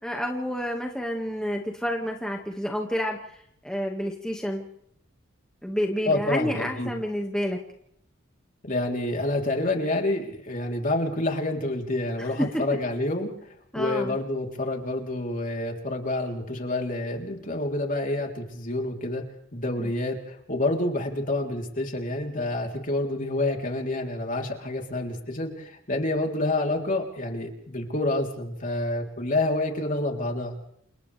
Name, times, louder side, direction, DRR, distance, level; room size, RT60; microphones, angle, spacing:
voice 1, 0.0-3.2 3.6-4.7 5.6-7.6 12.4-12.6 13.7-14.2 19.8-19.9, equal, 5° left, 0 dB, 1.9 m, -29 dB
voice 2, 6.1-6.9 8.6-13.3 13.8-19.3 19.5-30.6, left 2 dB, 40° left, 2 dB, 3.7 m, -28 dB
29.5 x 28.5 x 3.5 m, 0.73 s
head